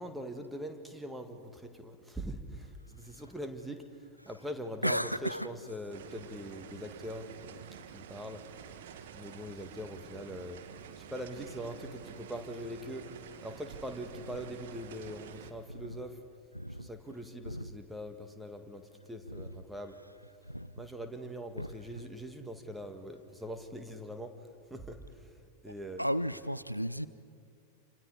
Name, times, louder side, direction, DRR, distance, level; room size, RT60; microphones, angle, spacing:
voice 1, 0.0-3.8 4.2-7.6 7.9-8.4 9.1-10.6 11.0-13.1 13.4-16.2 16.8-20.0 20.7-24.4 24.7-25.3 25.6-26.0, equal, 5° right, 1.8 m, -42 dB
voice 2, 4.8-5.5 15.8-15.9 16.5-16.9 17.5-17.7 19.3-19.4 20.5-20.7 21.6-21.7 26.0-27.1, equal, 90° right, 0.5 m, -33 dB
sound 1, 5.9-15.5, right 8 dB, 55° right, 1.4 m, -49 dB
29.0 x 26.0 x 5.0 m
figure-of-eight pair, 90°, 0 cm